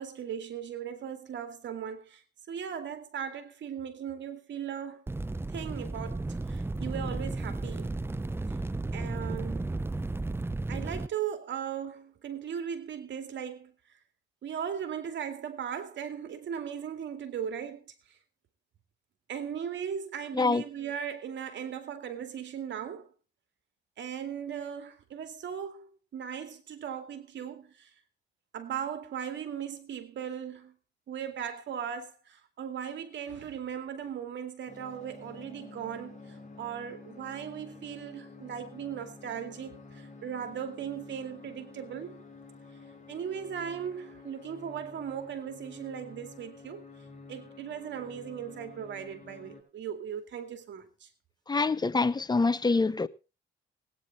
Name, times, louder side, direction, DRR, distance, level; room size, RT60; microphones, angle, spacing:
voice 1, 0.0-2.2 2.5-5.0 5.5-8.0 8.9-9.8 10.7-13.7 14.4-17.8 19.3-23.1 24.0-27.9 28.5-30.7 31.1-42.2 43.1-46.8 47.3-51.1, right 8 dB, 65° right, 2.4 m, -38 dB
sound 1, 5.1-11.1, right 2 dB, 10° right, 0.7 m, -34 dB
sound 2, 34.7-49.6, left 4 dB, 35° left, 6.4 m, -50 dB
voice 2, 51.5-53.1, left 3 dB, 20° left, 0.8 m, -25 dB
18.5 x 9.5 x 4.1 m
cardioid pair, 90°, 20 cm